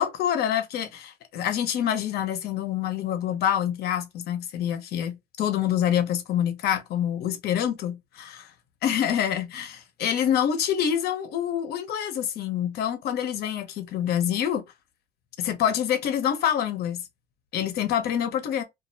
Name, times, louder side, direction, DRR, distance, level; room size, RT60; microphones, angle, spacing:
voice 1, 0.0-8.5 8.8-14.6 15.4-17.0 17.5-18.6, left 9 dB, 70° left, 0.7 m, -26 dB
2.3 x 2.1 x 2.6 m
cardioid pair, 110°, 17 cm